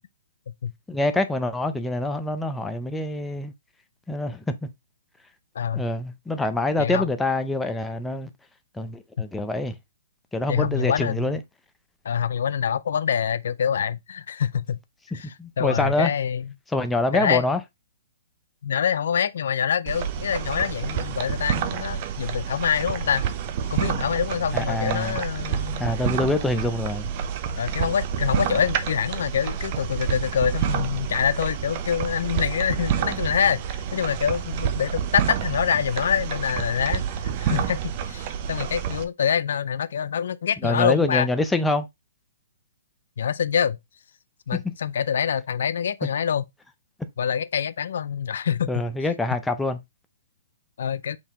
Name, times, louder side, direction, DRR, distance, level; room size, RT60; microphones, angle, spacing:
voice 1, 0.9-3.5 4.1-4.7 5.7-8.3 8.7-9.8 10.3-11.4 15.1-16.1 16.7-17.6 24.5-25.2 25.8-27.1 40.6-41.9 44.5-44.7 48.7-49.8, left 2 dB, 5° left, 0.5 m, -25 dB
voice 2, 5.6-5.9 6.8-7.1 10.5-11.4 12.0-14.8 15.1-15.3 15.6-16.5 17.1-17.4 18.6-23.2 23.7-25.9 27.6-33.6 33.9-41.3 43.2-43.8 44.5-46.4 47.2-48.7 50.8-51.2, left 8 dB, 65° left, 0.3 m, -25 dB
sound 1, 19.9-39.0, right 8 dB, 40° right, 0.6 m, -28 dB
5.4 x 2.7 x 3.5 m
hypercardioid pair, 145°, 0 cm